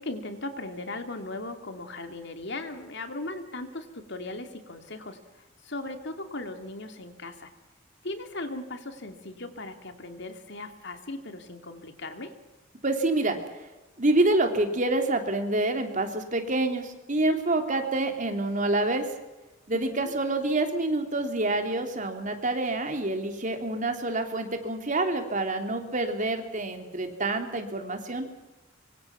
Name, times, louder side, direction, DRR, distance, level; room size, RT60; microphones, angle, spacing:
voice 1, 0.0-5.2 5.6-7.5 8.0-12.3 19.7-20.1, left 2 dB, 65° left, 6 dB, 2.7 m, -38 dB
voice 2, 12.8-13.4 14.0-19.1 19.7-28.3, right 2 dB, 40° right, 5 dB, 3.3 m, -27 dB
25.0 x 24.5 x 6.0 m, 1.1 s
head